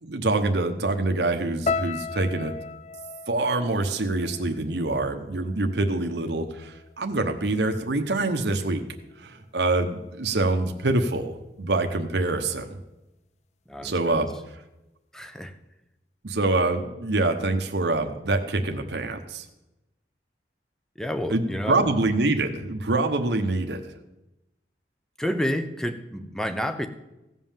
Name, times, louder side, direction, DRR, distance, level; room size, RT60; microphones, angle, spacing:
voice 1, 0.0-2.5 3.3-8.8 9.2-12.8 13.8-14.3 16.2-19.4 21.3-21.4 21.7-23.9, right 2 dB, 75° right, 5 dB, 1.0 m, -25 dB
sound 1, 1.7-5.9 6.1-6.9 7.5-7.7, left 4 dB, 40° left, 0.3 m, -35 dB
voice 2, 13.7-14.2 15.1-15.6 21.0-21.8 25.2-26.9, equal, 5° left, 9 dB, 0.7 m, -29 dB
16.0 x 5.5 x 7.3 m, 0.95 s
head